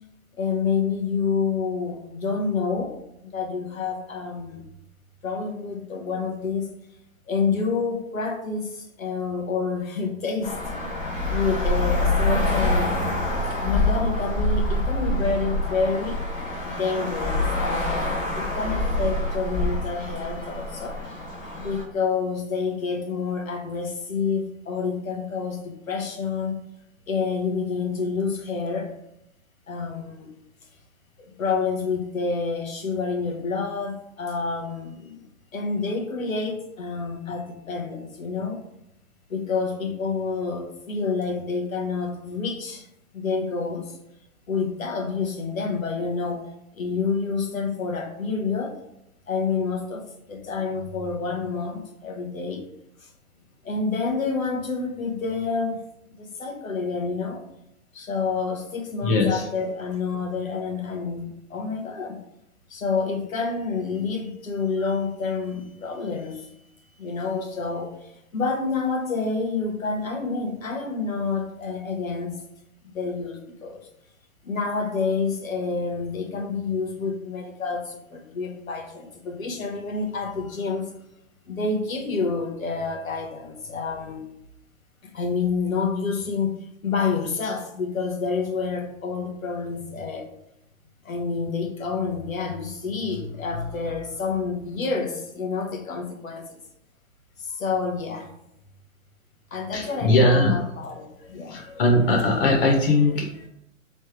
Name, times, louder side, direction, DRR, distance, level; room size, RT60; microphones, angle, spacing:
voice 1, 0.4-3.0 3.2-4.7 5.2-6.7 7.3-10.6 11.3-13.0 13.5-16.2 16.6-21.0 21.6-26.6 27.1-28.9 29.7-30.3 31.2-38.6 39.3-42.9 43.1-44.0 44.5-48.8 49.3-52.7 53.0-53.1 53.6-55.8 56.2-57.5 57.9-62.2 62.7-66.5 67.0-72.4 72.8-73.8 74.4-80.9 81.5-84.3 85.0-86.6 86.8-90.3 91.0-96.6 97.4-98.3 99.5-101.6, left 4 dB, 85° left, 2 dB, 1.1 m, -28 dB
Traffic noise roadway noise, 10.4-21.8, left 1 dB, 25° left, 1.1 m, -26 dB
voice 2, 59.0-59.4 99.7-100.6 101.5-103.5, left 2 dB, 45° left, 0 dB, 0.7 m, -20 dB
3.2 x 3.1 x 4.5 m, 0.82 s
hypercardioid pair, 130°, 40 cm